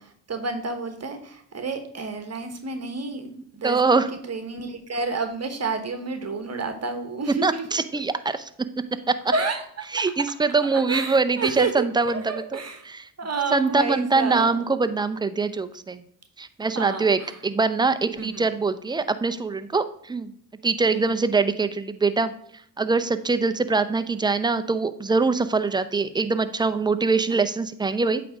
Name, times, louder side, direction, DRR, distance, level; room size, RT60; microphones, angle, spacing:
voice 1, 0.0-7.6 9.3-10.0 10.9-12.8 13.2-14.6 16.7-17.3 18.2-18.4 20.9-21.2 27.3-27.4, right 4 dB, 35° right, 7 dB, 1.2 m, -30 dB
voice 2, 3.6-4.1 7.4-8.5 9.1-9.2 9.9-12.6 12.9-13.1 13.5-16.0 16.4-20.3 20.6-22.3 22.8-28.2, right 4 dB, 10° right, 11 dB, 0.5 m, -23 dB
8.5 x 3.5 x 4.9 m, 0.68 s
hypercardioid pair, 55°, 43 cm